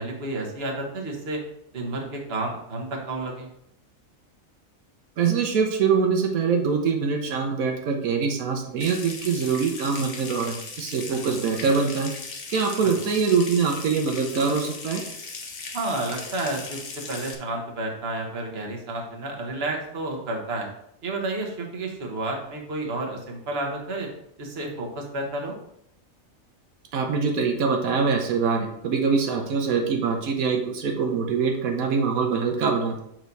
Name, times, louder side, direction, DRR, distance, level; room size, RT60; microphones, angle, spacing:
voice 1, 0.0-1.4 1.7-3.5 12.8-12.9 15.7-20.7 21.0-24.1 24.4-25.6, right 2 dB, 50° right, 1 dB, 1.4 m, -31 dB
voice 2, 5.2-12.1 12.5-15.0 26.9-33.0, right 5 dB, 90° right, 3 dB, 1.3 m, -24 dB
Water tap faucet / Sink (filling or washing) / Trickle dribble, 8.8-17.4, left 4 dB, 75° left, 1.4 m, -38 dB
6.4 x 4.6 x 4.0 m, 0.74 s
omnidirectional pair, 1.4 m